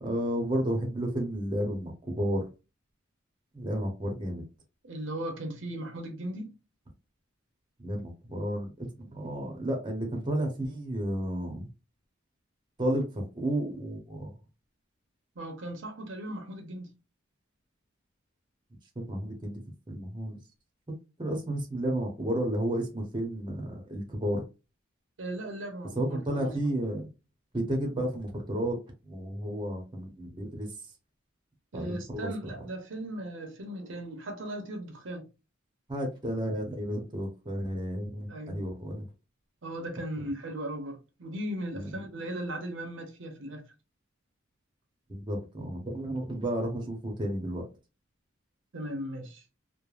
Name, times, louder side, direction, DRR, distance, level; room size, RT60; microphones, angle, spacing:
voice 1, 0.0-2.4 3.5-4.4 7.8-11.7 12.8-14.3 19.1-19.6 19.9-20.4 21.2-24.4 26.0-27.1 27.5-28.8 29.1-30.7 31.7-32.5 35.9-39.0 41.7-42.1 45.1-47.6, right 1 dB, 25° right, 0.7 m, -32 dB
voice 2, 4.8-6.5 15.4-16.9 25.2-26.8 31.7-35.3 38.3-38.6 39.6-43.6 48.7-49.4, right 1 dB, 70° right, 0.7 m, -37 dB
3.2 x 2.0 x 2.4 m
head